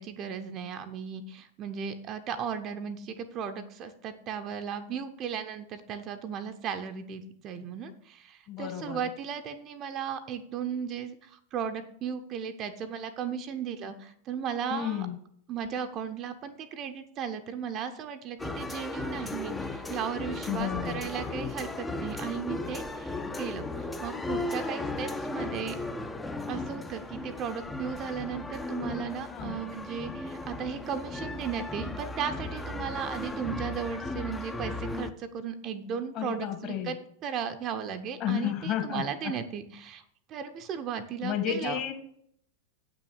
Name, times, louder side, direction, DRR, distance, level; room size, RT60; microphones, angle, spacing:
voice 1, 0.0-15.1 15.5-25.8 26.5-37.0 37.2-40.0 40.3-41.8, right 7 dB, 35° right, 8 dB, 0.8 m, -36 dB
voice 2, 8.5-9.0 14.7-15.2 20.5-21.1 29.3-29.6 36.1-37.0 38.2-39.3 41.2-41.9, left 10 dB, 40° left, 5 dB, 2.1 m, -32 dB
sound 1, 18.4-35.1, left 2 dB, 10° left, 0.7 m, -36 dB
8.3 x 6.2 x 6.5 m, 0.65 s
figure-of-eight pair, 90°, 0 cm